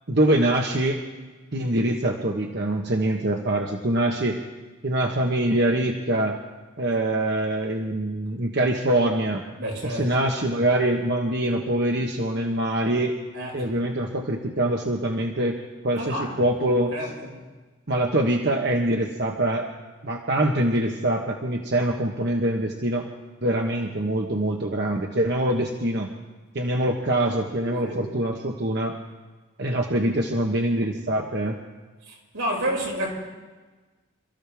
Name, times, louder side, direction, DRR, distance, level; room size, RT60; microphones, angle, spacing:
voice 1, 0.1-1.0 1.5-4.4 4.8-6.4 6.8-9.4 9.8-13.1 13.5-15.6 15.8-16.9 17.9-19.6 20.0-23.1 23.4-26.1 26.5-28.9 29.6-31.6, right 1 dB, 55° right, 1.2 m, -24 dB
voice 2, 9.6-10.1 13.3-13.7 15.9-16.5 16.9-17.3 27.6-28.0 32.1-33.1, right 1 dB, 90° right, 5.9 m, -30 dB
27.5 x 14.0 x 3.5 m
head